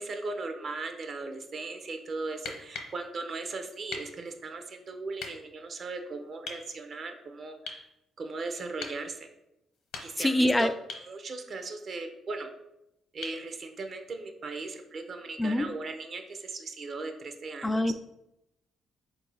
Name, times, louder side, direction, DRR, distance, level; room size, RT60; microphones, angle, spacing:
voice 1, 0.0-7.9 8.2-9.3 10.0-10.7 11.1-12.5 13.1-17.9, right 3 dB, 50° right, 6 dB, 0.6 m, -38 dB
sound 1, 2.3-3.0 3.9-4.1 5.2-5.3 6.5-6.7 7.7-7.9 8.8-9.0 9.7-10.4 10.9-11.1 13.2-13.5 15.3-15.4, left 4 dB, 75° left, 0.8 m, -40 dB
voice 2, 10.2-10.7 15.4-15.7 17.6-17.9, left 1 dB, 15° left, 10 dB, 0.3 m, -24 dB
3.9 x 2.6 x 4.6 m, 0.86 s
cardioid pair, 90°, 0 cm